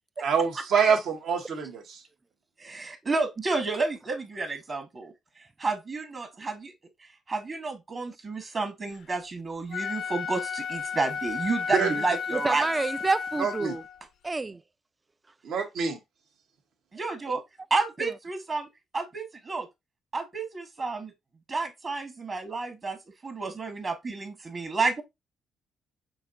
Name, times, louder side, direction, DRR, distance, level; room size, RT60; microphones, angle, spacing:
voice 1, 0.2-2.0 11.7-11.9 13.4-13.8 15.4-16.0, right 6 dB, 75° right, 1.2 m, -26 dB
voice 2, 2.6-5.1 5.6-6.7 7.3-12.7 16.9-17.4 17.7-18.7 18.9-19.7 20.1-21.1 21.5-23.0 23.2-25.0, right 3 dB, 40° right, 1.3 m, -30 dB
Wind instrument woodwind instrument, 9.6-14.0, left 6 dB, 70° left, 0.5 m, -33 dB
voice 3, 12.3-13.8 14.2-14.6 17.3-17.4 18.0-18.1, right 3 dB, 20° right, 0.3 m, -29 dB
6.2 x 2.9 x 2.5 m
cardioid pair, 90°, 0 cm